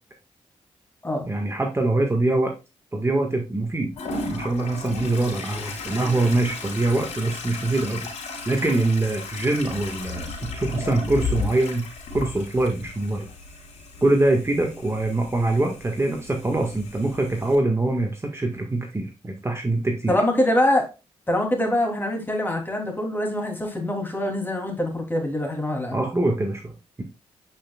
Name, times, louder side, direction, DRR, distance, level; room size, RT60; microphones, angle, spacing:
voice 1, 1.3-2.5 2.9-3.9 4.3-8.1 8.5-11.8 12.1-13.3 14.0-20.1 25.9-27.0, right 2 dB, 25° right, 2 dB, 1.6 m, -24 dB
Toilet flush, 4.0-17.6, left 3 dB, 80° left, 3.3 m, -35 dB
voice 2, 20.1-20.9 21.3-26.0, left 1 dB, 20° left, 1 dB, 3.0 m, -24 dB
8.6 x 5.5 x 2.3 m, 0.28 s
supercardioid pair, 55°, 12 cm